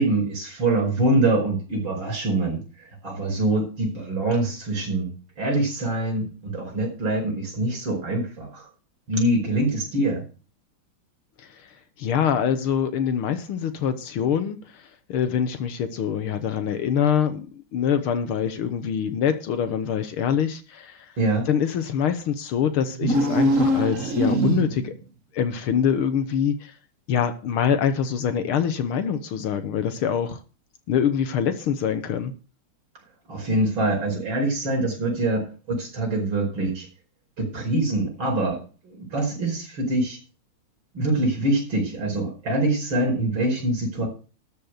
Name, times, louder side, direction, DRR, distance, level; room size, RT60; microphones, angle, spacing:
voice 1, 0.0-5.1 5.4-8.7 9.1-10.2 21.2-21.5 33.3-36.9 37.4-38.6 38.8-40.2 40.9-44.1, right 2 dB, 65° right, -1 dB, 5.8 m, -24 dB
voice 2, 12.0-14.8 15.1-21.1 21.5-24.9 25.3-26.7 27.1-30.4 30.9-32.3, left 8 dB, 75° left, 10 dB, 1.9 m, -24 dB
sound 1, 22.9-25.0, right 1 dB, 40° right, 1.8 m, -22 dB
13.0 x 5.3 x 8.0 m, 0.35 s
omnidirectional pair, 2.4 m